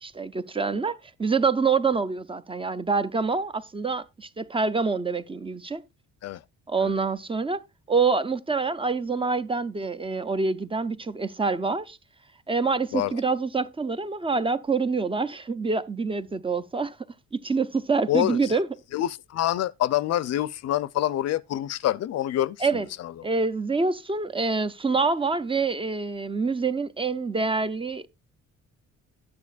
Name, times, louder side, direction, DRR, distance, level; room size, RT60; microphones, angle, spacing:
voice 1, 0.0-5.8 6.7-7.6 7.9-12.0 12.5-17.0 17.3-18.7 22.6-22.9 23.2-28.1, right 4 dB, 20° right, 0.5 m, -26 dB
voice 2, 18.1-18.6 18.9-22.6 23.0-23.1, left 13 dB, 55° left, 0.5 m, -26 dB
12.5 x 9.6 x 2.4 m
cardioid pair, 160°, 30 cm